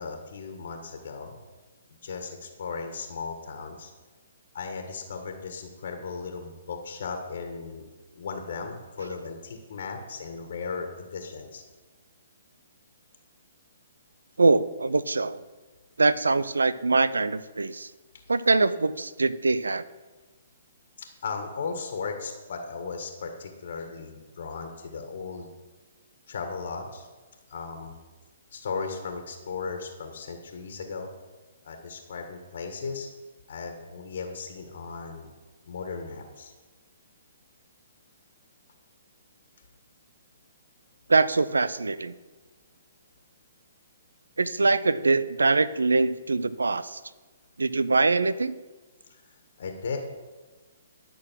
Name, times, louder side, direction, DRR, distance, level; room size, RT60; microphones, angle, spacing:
voice 1, 0.0-1.4 2.0-3.9 4.5-7.8 8.1-11.6 21.0-25.5 26.3-27.1 27.5-28.0 28.5-31.1 31.6-33.1 33.5-35.3 35.6-36.5 49.1-49.2 49.6-50.0, left 5 dB, 60° left, 4 dB, 1.6 m, -36 dB
voice 2, 14.4-15.4 16.0-17.9 18.3-19.8 41.1-42.1 44.4-47.0 47.6-48.5, right 3 dB, 80° right, 16 dB, 0.5 m, -23 dB
12.5 x 6.3 x 6.2 m, 1.3 s
figure-of-eight pair, 130°, 0 cm